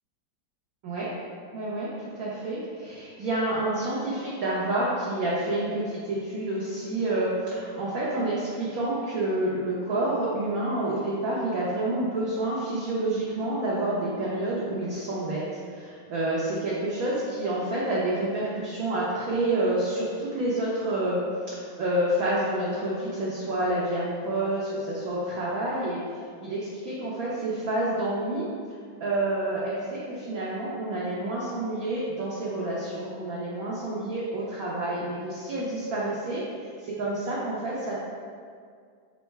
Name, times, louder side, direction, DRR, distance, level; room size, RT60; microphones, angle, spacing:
voice 1, 1.5-1.9 2.2-21.2 21.5-26.0 26.4-28.4 29.0-37.9, right 1 dB, 75° right, -6 dB, 0.8 m, -28 dB
3.7 x 2.1 x 4.4 m, 2.1 s
omnidirectional pair, 2.1 m